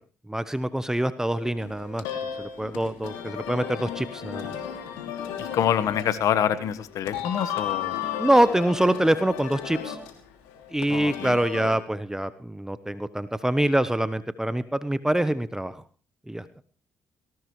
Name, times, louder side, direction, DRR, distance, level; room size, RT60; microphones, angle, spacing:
voice 1, 0.3-2.1 2.4-4.5 8.2-10.0 10.7-15.8 16.3-16.5, right 1 dB, 10° right, 13 dB, 1.0 m, -25 dB
sound 1, 1.3-11.7, left 9 dB, 90° left, 2.8 m, -35 dB
voice 2, 5.4-8.0 10.9-11.4, left 10 dB, 70° left, 13 dB, 1.4 m, -26 dB
19.0 x 17.5 x 3.2 m, 0.38 s
supercardioid pair, 55°, 6 cm